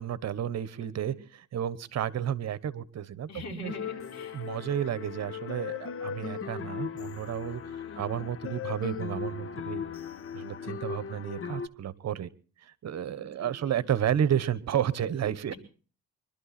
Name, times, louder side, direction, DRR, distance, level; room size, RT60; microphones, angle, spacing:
voice 1, 0.0-3.7 4.3-9.8 10.3-12.3 12.6-15.5, right 10 dB, 60° right, 16 dB, 1.2 m, -32 dB
voice 2, 0.8-1.2 3.3-4.4 7.8-8.3 13.2-13.8, left 3 dB, 65° left, 1 dB, 5.1 m, -45 dB
sound 1, 3.7-11.7, left 7 dB, 45° left, 1.3 m, -37 dB
24.5 x 12.0 x 4.3 m, 0.40 s
cardioid pair, 90°, 30 cm